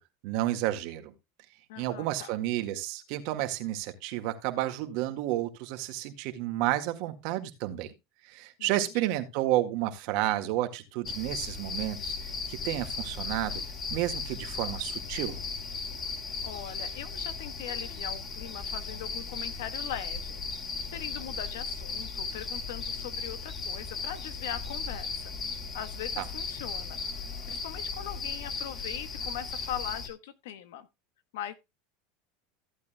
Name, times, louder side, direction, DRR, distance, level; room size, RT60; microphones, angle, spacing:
voice 1, 0.2-1.1 1.8-7.9 8.2-13.5 13.9-15.4 26.2-26.3, right 14 dB, 65° right, 1.8 m, -31 dB
voice 2, 1.7-2.4 8.6-9.1 16.4-20.4 20.9-25.4 25.7-27.0 27.5-30.9 31.3-31.5, left 10 dB, 80° left, 1.2 m, -40 dB
sound 1, 11.0-30.1, left 4 dB, 30° left, 3.0 m, -36 dB
15.0 x 8.4 x 2.2 m
supercardioid pair, 115°, 0 cm